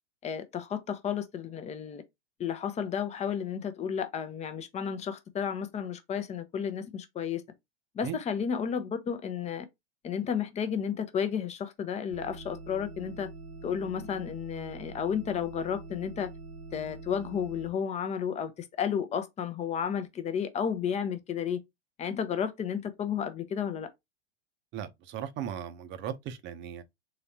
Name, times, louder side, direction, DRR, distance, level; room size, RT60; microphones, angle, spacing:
voice 1, 0.2-2.0 2.4-7.4 7.9-9.7 10.0-13.3 13.6-16.3 16.7-21.6 22.0-23.9, left 7 dB, 20° left, 0.7 m, -32 dB
sound 1, 12.1-17.7, right 3 dB, 70° right, 1.1 m, -45 dB
voice 2, 24.7-26.8, right 9 dB, 35° right, 0.8 m, -37 dB
3.9 x 3.1 x 2.9 m
hypercardioid pair, 100°, 34 cm